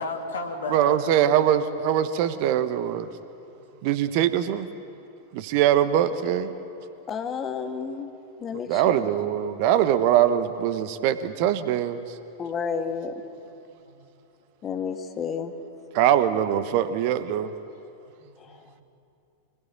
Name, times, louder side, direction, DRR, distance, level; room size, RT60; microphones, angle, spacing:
voice 1, 0.0-1.3 3.7-3.8 13.8-14.0 18.2-18.8, left 3 dB, 65° left, 2 dB, 3.0 m, -34 dB
voice 2, 0.7-3.1 3.8-4.7 5.3-6.5 8.7-12.0 15.9-17.5, right 10 dB, 45° right, 12 dB, 1.2 m, -22 dB
voice 3, 7.1-8.1 8.4-9.0 12.4-13.2 14.6-15.5 18.4-18.6, left 6 dB, 25° left, 5 dB, 1.9 m, -31 dB
25.5 x 20.5 x 9.0 m, 2.7 s
figure-of-eight pair, 90°, 0 cm